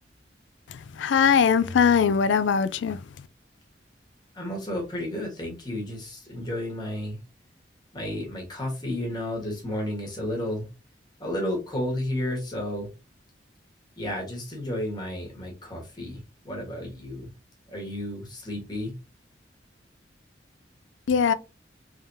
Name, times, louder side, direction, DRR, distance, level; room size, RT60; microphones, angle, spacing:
voice 1, 0.7-3.0 21.1-21.3, left 6 dB, 85° left, 0.4 m, -21 dB
voice 2, 4.3-7.2 7.9-10.7 11.2-12.9 14.0-17.3 17.7-19.0, left 1 dB, 25° left, 1.3 m, -32 dB
3.5 x 3.4 x 2.7 m
head